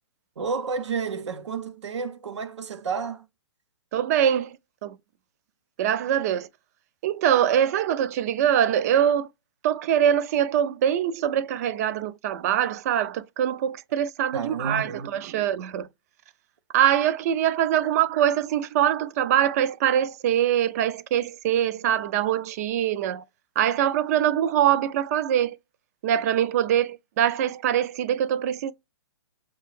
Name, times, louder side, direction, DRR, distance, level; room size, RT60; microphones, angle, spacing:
voice 1, 0.4-3.3 14.3-15.1, right 5 dB, 85° right, 0.8 m, -31 dB
voice 2, 3.9-4.6 4.8-5.0 5.8-6.5 7.0-9.3 9.6-15.9 16.7-23.2 23.6-25.6 26.0-28.7, right 10 dB, 35° right, 0.4 m, -23 dB
6.6 x 2.2 x 3.1 m
hypercardioid pair, 150°, 15 cm